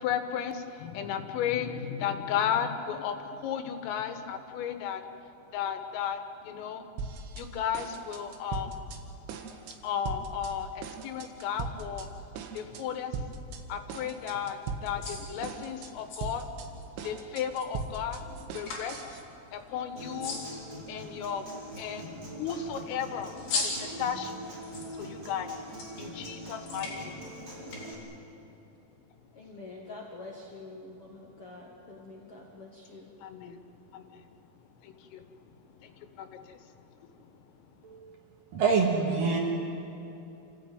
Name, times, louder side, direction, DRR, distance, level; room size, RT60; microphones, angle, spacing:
voice 1, 0.0-5.0 5.5-6.9 7.4-8.8 9.8-12.1 12.5-13.2 13.7-16.5 17.0-18.2 18.5-19.2 19.5-20.4 20.9-21.5 21.8-22.1 22.4-24.3 25.0-25.6 26.0-27.2 33.2-33.6 33.9-34.2 34.8-35.2 35.8-36.6 37.2-37.3, left 8 dB, 90° left, 8 dB, 4.0 m, -34 dB
sound 1, 7.0-7.5 7.7-9.0 9.3-9.8 10.1-10.5 10.8-12.1 12.4-12.8 13.1-13.6 13.9-15.1 15.4-15.9 16.2-19.2, right 5 dB, 80° right, 4.1 m, -39 dB
sound 2, 14.5-27.8, left 3 dB, 55° left, 5.5 m, -42 dB
Human voice / Acoustic guitar, 20.0-27.9, right 1 dB, 20° right, 4.7 m, -43 dB
voice 2, 29.3-33.1, left 2 dB, 70° left, -1 dB, 1.3 m, -46 dB
voice 3, 38.5-39.4, right 4 dB, 55° right, 1 dB, 2.8 m, -25 dB
27.5 x 15.5 x 9.4 m, 2.9 s
omnidirectional pair, 5.7 m